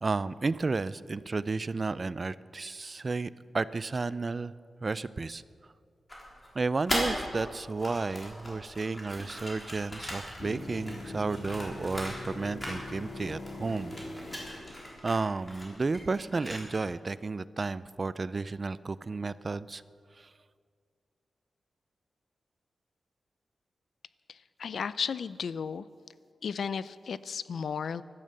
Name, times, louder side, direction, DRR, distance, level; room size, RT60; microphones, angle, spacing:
voice 1, 0.0-4.5 4.8-5.4 6.5-13.9 15.0-19.8 20.2-20.3, right 3 dB, 35° right, 17 dB, 0.3 m, -32 dB
sound 1, 6.1-7.4 7.7-12.3 12.6-13.2 13.5-16.9, equal, 20° left, 3.5 m, -38 dB
sound 2, 10.4-15.5 19.4-19.5, left 2 dB, 45° left, 2.4 m, -42 dB
voice 2, 24.3-25.8 26.4-28.0, left 6 dB, 75° left, 16 dB, 0.4 m, -34 dB
15.5 x 12.5 x 6.6 m, 2.1 s
wide cardioid pair, 145°, 0 cm